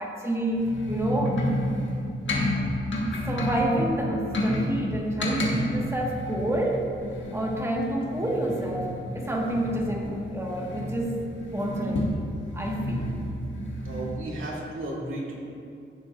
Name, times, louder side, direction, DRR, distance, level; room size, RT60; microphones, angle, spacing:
voice 1, 0.0-1.4 3.3-6.9 7.3-12.1 12.5-13.1, right 1 dB, 15° right, -2 dB, 1.6 m, -29 dB
sound 1, 0.5-14.2, left 1 dB, 65° left, 1.5 m, -30 dB
voice 2, 13.8-15.3, right 1 dB, 75° right, -5 dB, 2.3 m, -33 dB
16.0 x 7.2 x 2.6 m, 2.5 s
cardioid pair, 85°, 21 cm